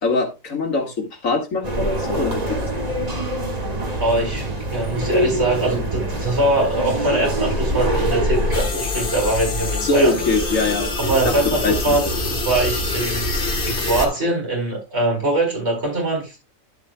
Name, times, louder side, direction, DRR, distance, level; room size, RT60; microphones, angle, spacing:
voice 1, 0.0-2.7 9.8-11.4 11.6-12.0, left 2 dB, 70° left, 3 dB, 2.2 m, -22 dB
sound 1, 1.6-8.6, equal, 30° right, 1.7 m, -24 dB
voice 2, 4.0-10.1 11.1-12.0 12.3-13.3 13.6-16.4, right 2 dB, 50° right, 0 dB, 4.8 m, -22 dB
sound 2, 8.5-14.1, left 2 dB, 40° left, 1.6 m, -25 dB
11.5 x 7.4 x 2.2 m, 0.26 s
omnidirectional pair, 1.4 m